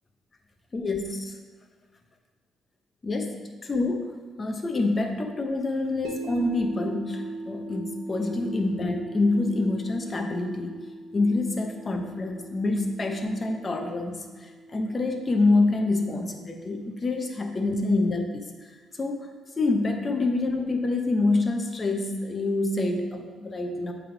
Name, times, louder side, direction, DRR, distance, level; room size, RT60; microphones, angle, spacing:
voice 1, 0.7-1.3 3.0-4.1 4.4-10.8 11.1-18.7 19.0-19.2 19.6-23.9, left 2 dB, 30° left, 4 dB, 0.8 m, -26 dB
sound 1, 6.0-18.2, right 1 dB, 85° right, 0.8 m, -42 dB
7.6 x 3.5 x 4.5 m, 1.5 s
cardioid pair, 90°, 0 cm